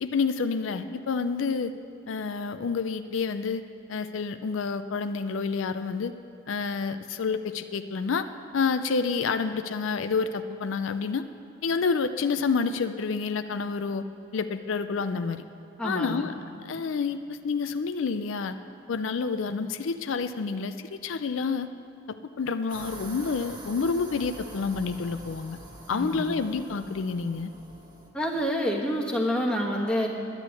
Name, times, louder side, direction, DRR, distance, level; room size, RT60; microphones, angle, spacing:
voice 1, 0.0-1.7 2.1-3.6 3.9-6.1 6.5-8.3 8.5-11.2 11.6-14.0 14.3-15.4 15.8-16.3 16.6-18.6 18.9-21.7 22.1-25.6 25.9-27.5, left 5 dB, 70° left, 10 dB, 0.4 m, -28 dB
voice 2, 15.8-16.3 25.9-26.4 28.1-30.1, equal, 5° left, -2 dB, 1.3 m, -28 dB
sound 1, 22.7-28.1, right 2 dB, 25° right, 1.5 m, -45 dB
10.5 x 10.5 x 8.2 m, 2.6 s
head